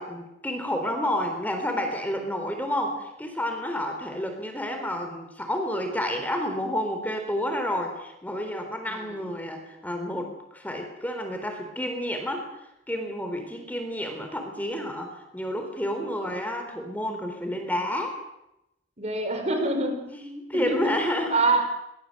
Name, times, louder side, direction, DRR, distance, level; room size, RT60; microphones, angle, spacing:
voice 1, 0.0-12.5 12.9-18.2 20.1-21.4, left 1 dB, 10° left, 5 dB, 3.9 m, -30 dB
voice 2, 8.9-9.3 19.0-20.1 20.5-20.9 21.3-21.7, right 2 dB, 35° right, 5 dB, 5.0 m, -26 dB
24.0 x 22.5 x 7.8 m, 0.86 s
head